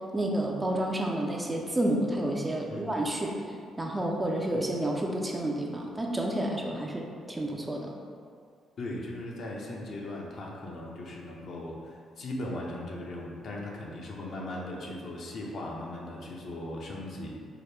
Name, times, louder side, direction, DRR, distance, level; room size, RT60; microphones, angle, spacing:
voice 1, 0.1-3.4 3.8-7.9, right 1 dB, 15° right, 0 dB, 0.4 m, -30 dB
voice 2, 8.8-17.3, left 1 dB, 60° left, -2 dB, 0.6 m, -38 dB
4.7 x 2.1 x 3.2 m, 2.2 s
cardioid pair, 90°, 0 cm